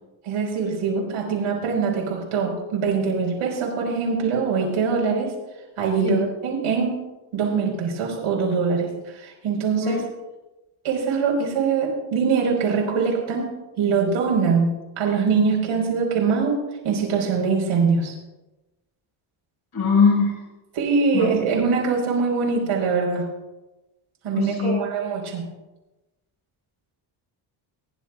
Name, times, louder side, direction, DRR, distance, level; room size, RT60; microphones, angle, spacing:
voice 1, 0.2-5.3 5.8-7.0 7.3-10.0 10.8-18.1 20.7-23.3 24.2-25.5, right 5 dB, 85° right, -1 dB, 5.0 m, -23 dB
voice 2, 19.7-20.3 21.1-21.3 24.3-24.8, left 5 dB, 50° left, -1 dB, 5.5 m, -21 dB
23.0 x 11.5 x 2.5 m, 1.1 s
cardioid pair, 95°, 48 cm